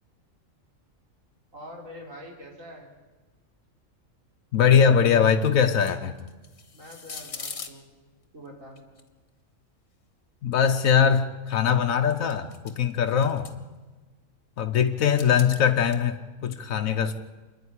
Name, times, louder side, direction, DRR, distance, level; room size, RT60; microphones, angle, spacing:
voice 1, 1.5-2.9 6.7-7.9 8.3-8.8, equal, 75° right, -1 dB, 4.6 m, -44 dB
voice 2, 4.5-6.2 10.4-13.5 14.6-17.1, left 7 dB, 90° left, 5 dB, 1.3 m, -21 dB
sound 1, 5.7-7.7 8.8-9.0 11.5-11.8 12.1-12.9 13.2-13.5 14.9-16.0, left 5 dB, 55° left, 1.7 m, -41 dB
26.5 x 10.5 x 9.9 m, 1.3 s
omnidirectional pair, 1.4 m